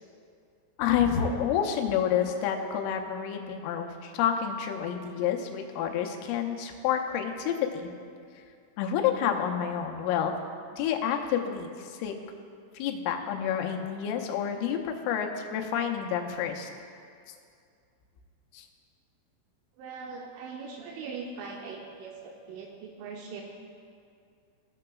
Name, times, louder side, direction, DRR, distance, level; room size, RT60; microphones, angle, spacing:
voice 1, 0.8-7.9 8.8-10.4 10.7-12.2 12.7-16.7 18.5-18.7, left 8 dB, 85° left, 3 dB, 3.3 m, -29 dB
voice 2, 19.8-23.4, right 5 dB, 85° right, 0 dB, 3.0 m, -41 dB
16.5 x 6.7 x 2.3 m, 2.3 s
omnidirectional pair, 5.7 m